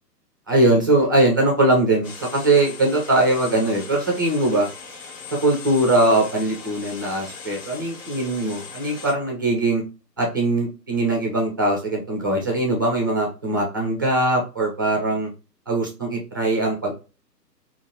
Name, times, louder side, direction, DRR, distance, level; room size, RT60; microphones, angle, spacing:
voice 1, 0.5-4.7 5.3-9.8 10.2-15.3 15.7-16.9, right 2 dB, 15° right, 0 dB, 0.4 m, -21 dB
sound 1, 2.0-9.1, left 5 dB, 35° left, 1.4 m, -39 dB
5.1 x 2.5 x 2.8 m, 0.31 s
figure-of-eight pair, 135°, 49 cm